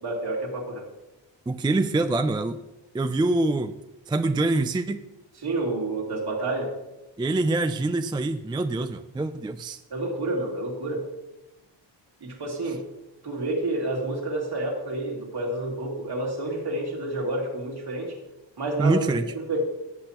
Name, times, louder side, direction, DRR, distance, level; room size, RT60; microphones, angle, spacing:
voice 1, 0.0-0.9 5.4-6.7 9.9-11.1 12.2-12.8 13.2-18.2 18.6-19.1 19.5-19.6, right 2 dB, 55° right, -2 dB, 2.8 m, -29 dB
voice 2, 1.5-2.6 2.9-3.7 4.1-5.0 7.2-9.8 18.8-19.3, right 2 dB, 10° right, 9 dB, 0.3 m, -25 dB
16.5 x 8.0 x 3.0 m, 0.96 s
wide cardioid pair, 130°, 46 cm